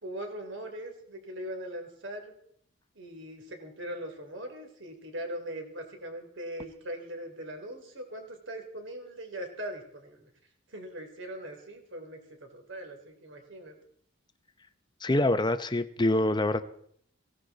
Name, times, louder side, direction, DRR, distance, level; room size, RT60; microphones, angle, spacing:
voice 1, 0.0-2.3 2.9-10.3 10.7-13.8, right 1 dB, 60° right, 4 dB, 3.2 m, -40 dB
voice 2, 15.0-16.6, left 1 dB, 20° left, 11 dB, 0.7 m, -25 dB
18.0 x 16.5 x 4.0 m, 0.67 s
head